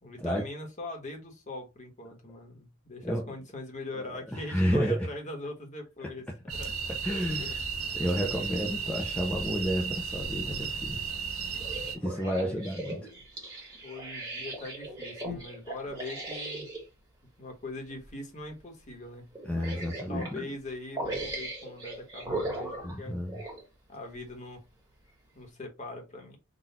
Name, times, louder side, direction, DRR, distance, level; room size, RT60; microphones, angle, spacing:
voice 1, 0.0-6.2 6.5-6.7 7.3-7.5 7.8-8.0 12.2-12.6 13.8-16.7 17.4-19.3 19.6-23.2 23.9-24.6 25.3-26.4, left 2 dB, 35° left, 1.3 m, -41 dB
voice 2, 3.9-5.1 7.0-7.6 7.9-11.0 11.9-13.0 13.5-13.7 19.4-20.5 22.8-23.4, equal, 5° left, 0.6 m, -31 dB
sound 1, 6.5-12.0, right 5 dB, 80° right, 1.3 m, -34 dB
sound 2, 11.5-16.8 17.9-18.1 18.5-18.6 19.3-20.4 20.9-23.6 24.3-24.4, right 1 dB, 15° right, 1.5 m, -38 dB
4.0 x 2.5 x 4.1 m
head